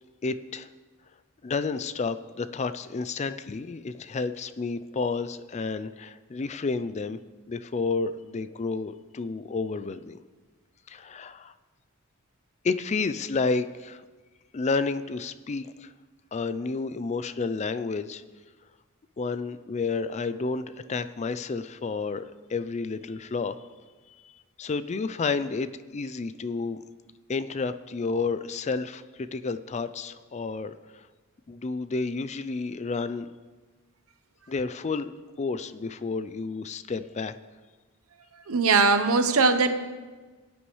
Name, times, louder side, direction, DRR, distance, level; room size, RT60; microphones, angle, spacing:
voice 1, 0.2-0.7 1.4-7.2 7.5-10.2 10.9-11.5 12.6-14.0 14.5-15.9 16.3-18.2 19.2-23.6 24.2-24.3 24.6-26.8 27.3-31.1 31.5-33.3 34.5-37.3, left 4 dB, 30° left, 13 dB, 0.4 m, -31 dB
voice 2, 38.5-39.7, right 4 dB, 85° right, 8 dB, 1.0 m, -20 dB
20.5 x 8.5 x 3.2 m, 1.4 s
head